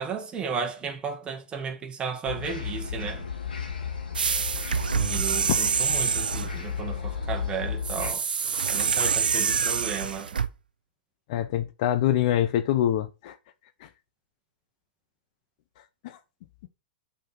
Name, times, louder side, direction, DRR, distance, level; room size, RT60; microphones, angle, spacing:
voice 1, 0.0-3.3 5.1-8.2 8.7-10.3, right 6 dB, 20° right, 2.0 m, -34 dB
sound 1, 2.2-8.1, left 6 dB, 85° left, 2.1 m, -34 dB
sound 2, 4.2-6.6 7.8-10.5, right 6 dB, 90° right, 0.6 m, -26 dB
voice 2, 4.9-5.6 11.3-13.3 13.8-13.9 16.0-16.2, left 11 dB, 55° left, 0.9 m, -25 dB
7.6 x 4.5 x 6.0 m
hypercardioid pair, 115°, 5 cm